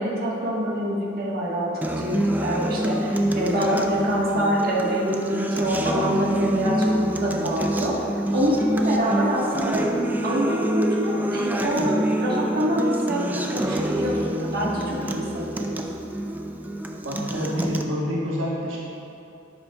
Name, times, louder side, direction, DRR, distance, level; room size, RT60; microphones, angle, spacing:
voice 1, 0.0-1.7 2.0-8.0 8.3-9.9 10.2-15.8, equal, 50° right, -4 dB, 1.3 m, -25 dB
Acoustic guitar, 1.8-17.8, right 1 dB, 10° right, 0.4 m, -26 dB
voice 2, 17.0-18.8, equal, 75° right, -4 dB, 1.1 m, -27 dB
10.5 x 7.8 x 2.3 m, 2.8 s
head